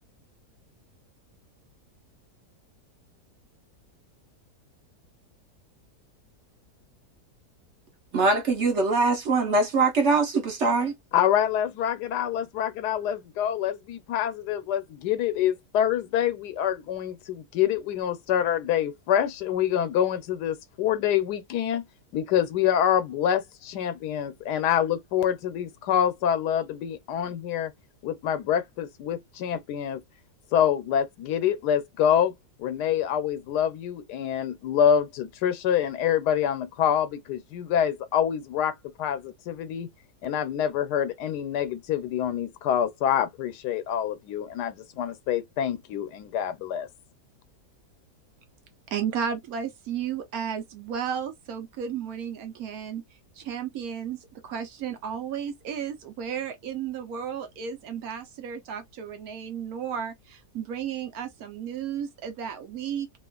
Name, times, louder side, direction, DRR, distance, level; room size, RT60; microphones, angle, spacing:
voice 1, 8.1-10.9, right 3 dB, 55° right, 1.0 m, -22 dB
voice 2, 11.1-21.8 22.1-27.7 28.0-30.0 30.5-32.3 32.6-39.9 40.2-46.9, left 9 dB, 90° left, 1.2 m, -26 dB
voice 3, 48.9-53.0 53.4-63.2, right 8 dB, 70° right, 1.1 m, -33 dB
2.9 x 2.4 x 2.3 m
omnidirectional pair, 1.7 m